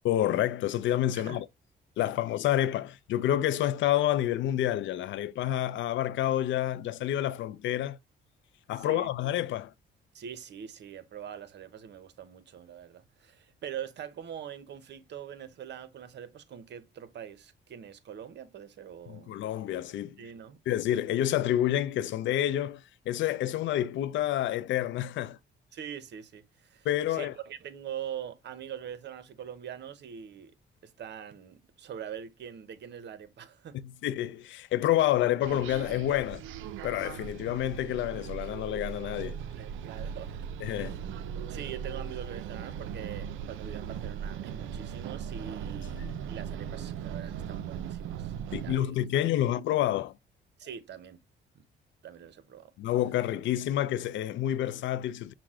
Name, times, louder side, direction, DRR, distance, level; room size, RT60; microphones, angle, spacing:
voice 1, 0.0-1.5 2.0-8.0 8.7-9.7 19.1-20.2 20.7-25.4 26.8-27.3 33.7-36.4 36.8-39.4 40.6-41.0 46.0-46.1 48.5-50.1 52.8-55.3, left 12 dB, 70° left, 0.4 m, -28 dB
voice 2, 1.1-1.4 8.8-9.1 10.1-19.4 20.2-20.6 25.7-30.5 30.8-33.8 39.5-40.4 40.7-41.0 41.5-49.5 50.6-51.2 51.5-51.6 52.0-52.7, right 9 dB, 60° right, 0.9 m, -43 dB
sound 1, 35.4-48.8, right 8 dB, 80° right, 0.4 m, -38 dB
5.9 x 2.1 x 3.6 m
cardioid pair, 90°, 20 cm